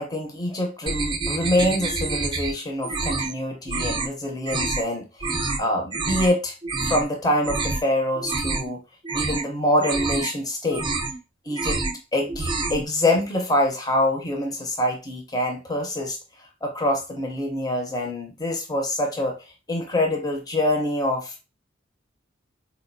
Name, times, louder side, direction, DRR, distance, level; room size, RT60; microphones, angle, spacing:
voice 1, 0.0-5.1 5.6-6.6 6.8-8.8 9.1-10.8 11.5-11.8 12.1-16.2 16.6-19.4 19.7-21.4, left 1 dB, 20° left, 2 dB, 0.7 m, -25 dB
sound 1, 0.9-2.5 2.8-3.3 3.7-4.1 4.4-4.8 5.2-5.6 5.9-6.3 6.6-7.1 7.4-7.8 8.1-8.7 9.0-9.5 9.8-10.3 10.7-11.2 11.5-12.0 12.3-12.9, right 3 dB, 25° right, 0.4 m, -27 dB
4.1 x 2.4 x 2.6 m, 0.29 s
head